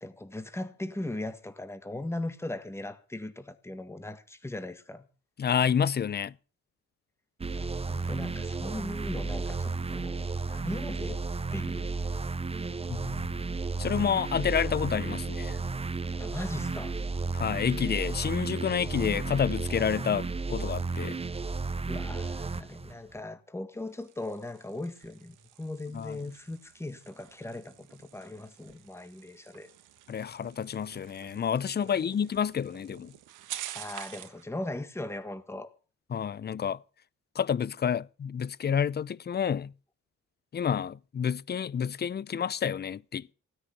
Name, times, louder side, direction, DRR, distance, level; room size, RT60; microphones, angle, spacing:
voice 1, 0.0-5.1 7.6-11.2 11.5-12.1 16.2-17.0 21.9-29.7 31.8-32.1 33.7-35.7, left 2 dB, 10° left, 1.8 m, -39 dB
voice 2, 5.4-6.3 12.9-13.3 13.8-15.6 17.3-21.2 25.9-26.2 30.1-33.1 36.1-36.8 37.4-39.7 40.5-43.3, left 7 dB, 35° left, 0.6 m, -29 dB
sound 1, 7.4-22.9, right 3 dB, 20° right, 0.7 m, -33 dB
sound 2, 23.7-34.4, right 12 dB, 85° right, 1.6 m, -48 dB
16.0 x 9.9 x 6.8 m
cardioid pair, 90°, 30 cm